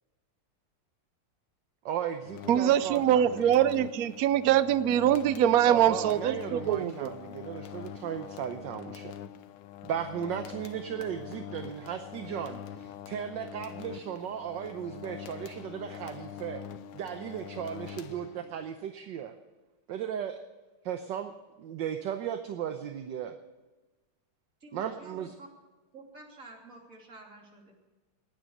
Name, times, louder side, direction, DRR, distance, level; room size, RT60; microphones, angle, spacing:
voice 1, 1.8-3.4 5.6-9.1 9.8-16.6 16.9-19.3 19.9-20.4 20.8-23.3 24.7-25.3, right 9 dB, 65° right, 7 dB, 1.4 m, -36 dB
sound 1, 2.2-18.7, left 9 dB, 80° left, 1.6 m, -44 dB
voice 2, 2.5-7.1, right 10 dB, 90° right, 14 dB, 0.7 m, -24 dB
voice 3, 24.6-25.5 25.9-27.7, right 2 dB, 40° right, 0 dB, 3.3 m, -50 dB
19.0 x 9.2 x 6.5 m, 1.2 s
omnidirectional pair, 2.3 m